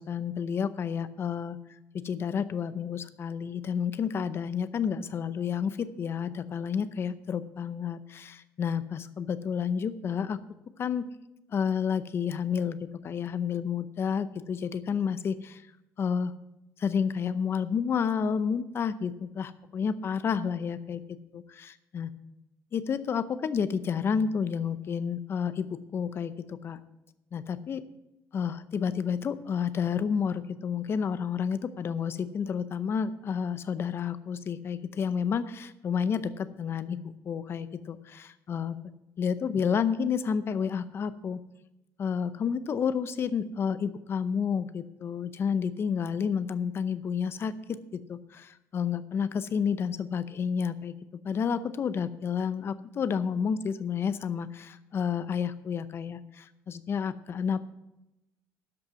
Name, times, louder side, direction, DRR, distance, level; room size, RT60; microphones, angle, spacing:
voice 1, 0.0-1.6 1.9-10.4 10.8-11.1 11.5-15.6 16.0-16.3 16.8-21.0 21.3-22.1 22.7-26.8 27.3-27.8 28.3-37.0 37.3-38.8 39.2-41.4 42.0-50.9 51.2-57.6, left 7 dB, 40° left, 14 dB, 0.6 m, -30 dB
12.5 x 5.5 x 7.3 m, 0.93 s
cardioid pair, 145°, 7 cm